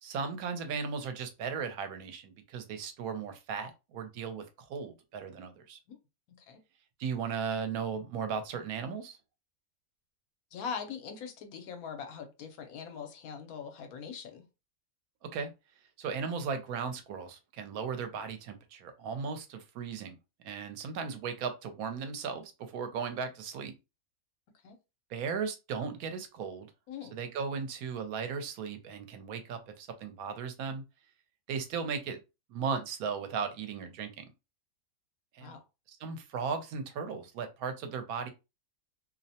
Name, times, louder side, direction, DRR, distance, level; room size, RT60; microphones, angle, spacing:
voice 1, 0.0-4.4 4.7-5.8 7.0-9.2 15.3-15.5 16.0-20.2 20.4-23.7 25.1-26.7 27.1-30.8 31.5-32.2 32.5-34.3 35.3-35.6 35.9-38.3, right 6 dB, 80° right, 1.0 m, -36 dB
voice 2, 10.5-14.4 24.6-24.8 26.9-27.2 35.4-35.6, left 6 dB, 80° left, 1.1 m, -41 dB
2.6 x 2.0 x 2.7 m
omnidirectional pair, 1.5 m